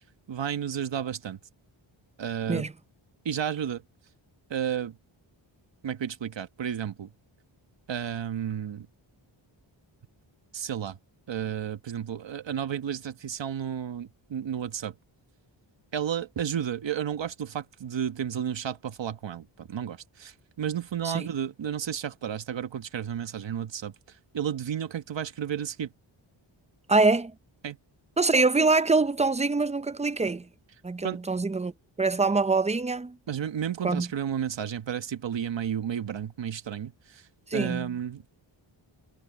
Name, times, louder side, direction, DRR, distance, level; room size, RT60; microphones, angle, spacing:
voice 1, 0.3-1.4 2.2-2.7 3.2-3.8 4.5-5.0 5.8-7.1 7.9-8.9 10.5-11.0 11.3-14.9 15.9-23.9 24.3-25.9 27.6-27.8 31.0-31.2 33.3-38.2, right 9 dB, 65° right, 1.2 m, -32 dB
voice 2, 26.9-27.3 28.2-30.5 30.8-31.7 32.0-33.2 33.8-34.1 37.5-37.9, right 3 dB, 15° right, 0.5 m, -24 dB
wide cardioid pair, 130°, 48 cm